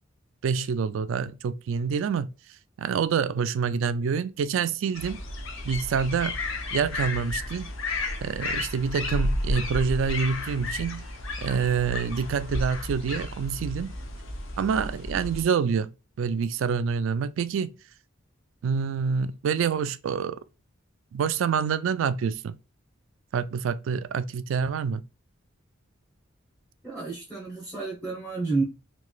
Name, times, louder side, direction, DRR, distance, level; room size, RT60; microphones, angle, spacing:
voice 1, 0.4-2.3 2.8-5.2 5.6-6.4 6.7-7.7 8.2-11.1 11.4-13.9 14.6-15.9 16.2-17.7 18.6-20.4 21.1-22.6 23.3-25.0, right 6 dB, 70° right, 0.3 m, -27 dB
sound 1, 5.0-15.4, left 2 dB, 70° left, 0.7 m, -32 dB
voice 2, 26.8-28.6, right 3 dB, 5° left, 0.8 m, -30 dB
3.1 x 2.9 x 2.2 m
head